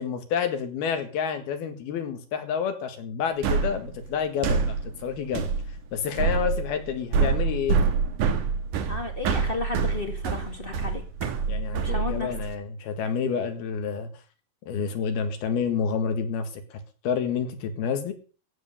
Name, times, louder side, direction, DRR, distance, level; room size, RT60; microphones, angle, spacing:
voice 1, 0.0-4.8 5.0-5.5 5.9-7.8 11.5-14.1 14.7-18.1, left 7 dB, 75° left, 8 dB, 3.7 m, -29 dB
sound 1, 3.4-12.6, right 5 dB, 65° right, 2.7 m, -26 dB
voice 2, 8.9-11.0 11.8-12.3, left 3 dB, 25° left, 4 dB, 1.3 m, -33 dB
15.5 x 8.1 x 6.8 m, 0.38 s
omnidirectional pair, 4.4 m